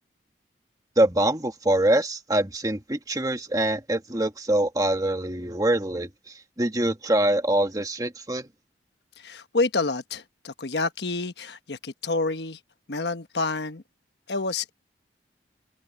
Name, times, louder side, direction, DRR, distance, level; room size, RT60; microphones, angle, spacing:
voice 1, 1.0-8.5, right 1 dB, 20° right, 1.5 m, -24 dB
voice 2, 9.2-12.6 12.9-13.8 14.3-14.7, left 3 dB, 70° left, 1.2 m, -28 dB
head